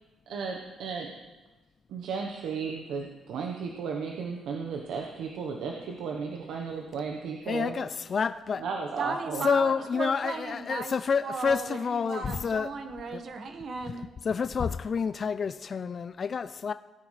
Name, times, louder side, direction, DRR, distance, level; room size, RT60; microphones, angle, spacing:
voice 1, 0.3-1.1 1.9-7.7 8.6-9.4 12.1-12.2, right 5 dB, 80° right, 1.0 m, -34 dB
voice 2, 7.5-8.7 9.4-12.7 13.1-13.2 13.9-14.0 14.2-16.7, left 6 dB, 45° left, 0.3 m, -29 dB
voice 3, 9.0-10.9 11.2-14.0, right 4 dB, 55° right, 1.3 m, -36 dB
17.5 x 9.8 x 3.2 m
cardioid pair, 90°, 0 cm